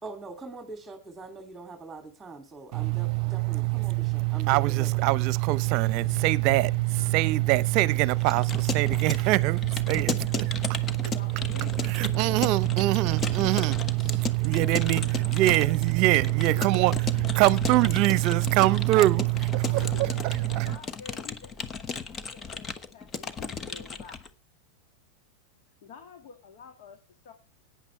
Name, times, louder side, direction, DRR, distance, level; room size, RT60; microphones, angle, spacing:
voice 1, 0.0-5.0, right 3 dB, 10° right, 2.7 m, -43 dB
voice 2, 2.7-20.8, right 19 dB, 50° right, 0.8 m, -24 dB
sound 1, 5.8-12.7 13.0-13.5 13.9-14.0, left 3 dB, 90° left, 0.8 m, -47 dB
Keyboard (musical) / Computer keyboard, 8.2-24.3, left 5 dB, 25° left, 1.2 m, -36 dB
voice 3, 11.0-12.9 13.4-16.1 16.5-19.0 19.7-24.2 25.8-27.3, left 7 dB, 60° left, 2.1 m, -48 dB
17.0 x 9.5 x 3.3 m
hypercardioid pair, 95°, 0 cm